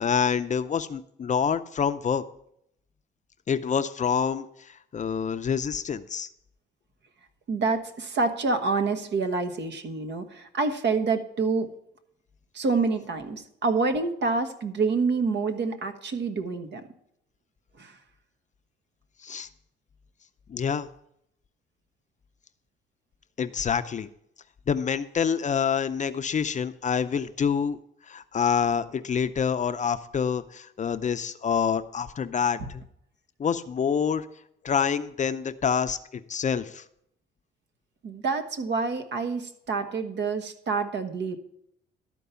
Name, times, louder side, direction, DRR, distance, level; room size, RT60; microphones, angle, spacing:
voice 1, 0.0-2.2 3.5-4.4 4.9-6.3 19.2-19.5 20.5-20.9 23.4-24.1 24.7-27.8 28.1-32.8 33.4-34.3 34.6-36.0 36.3-36.8, left 7 dB, 40° left, 11 dB, 0.5 m, -26 dB
voice 2, 7.5-11.7 12.5-16.8 17.8-18.0 38.0-41.4, right 4 dB, 60° right, 7 dB, 1.3 m, -27 dB
12.5 x 4.6 x 6.9 m, 0.74 s
cardioid pair, 90°, 20 cm